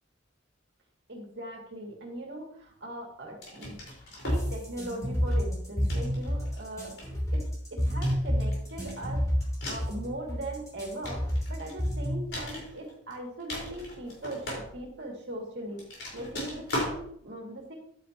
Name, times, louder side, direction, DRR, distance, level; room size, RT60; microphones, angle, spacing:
voice 1, 1.1-3.8 4.2-7.4 7.7-15.9 16.1-17.7, right 1 dB, 60° right, 0 dB, 2.5 m, -40 dB
sound 1, 3.4-4.5 5.2-5.5 5.9-6.6 7.0-7.5 8.0-10.0 10.6-11.9 12.3-13.1 13.4-15.1 15.7-17.0, left 1 dB, 65° left, 4.7 m, -38 dB
sound 2, 4.3-12.3, equal, 15° left, 3.1 m, -29 dB
11.5 x 9.3 x 3.0 m, 0.65 s
head